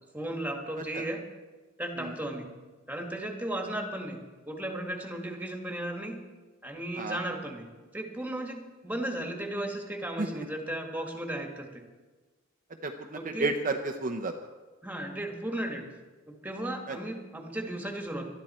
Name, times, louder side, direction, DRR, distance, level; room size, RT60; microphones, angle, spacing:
voice 1, 0.1-1.2 1.8-2.5 2.9-4.2 4.5-6.2 6.6-7.7 7.9-11.8 13.1-13.5 14.8-15.9 16.3-18.3, right 1 dB, 10° right, 3 dB, 1.8 m, -35 dB
voice 2, 12.8-14.3 16.9-17.0, right 3 dB, 40° right, 4 dB, 0.8 m, -32 dB
19.5 x 12.5 x 4.4 m, 1.3 s
head